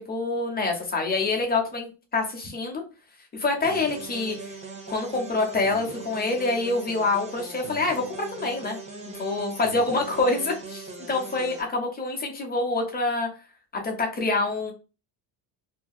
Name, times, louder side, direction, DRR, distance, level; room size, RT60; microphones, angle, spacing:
voice 1, 0.0-2.8 3.3-4.6 4.9-8.8 9.1-13.3 13.7-14.7, left 3 dB, 20° left, 2 dB, 0.8 m, -26 dB
sound 1, 3.6-11.6, right 3 dB, 15° right, 0.3 m, -40 dB
2.7 x 2.2 x 2.2 m, 0.32 s
cardioid pair, 135°, 47 cm